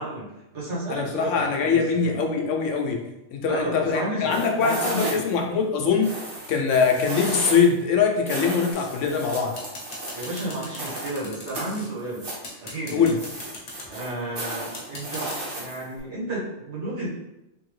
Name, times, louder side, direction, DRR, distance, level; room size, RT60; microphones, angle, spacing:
voice 1, 0.0-2.2 3.4-5.3 10.1-12.3 12.6-13.1 13.9-17.1, right 1 dB, 70° right, -7 dB, 1.5 m, -32 dB
voice 2, 0.9-3.0 3.3-6.1 6.5-9.5 12.9-13.2, left 5 dB, 90° left, 3 dB, 1.0 m, -22 dB
sound 1, 4.3-5.4 6.0-7.7 8.3-11.2 11.5-12.5 13.2-16.0, right 1 dB, 50° right, 1.1 m, -34 dB
sound 2, 8.7-9.1 9.6-11.9 12.4-13.9 14.7-15.4, left 2 dB, 60° left, 1.1 m, -39 dB
3.5 x 2.7 x 3.1 m, 0.92 s
omnidirectional pair, 1.2 m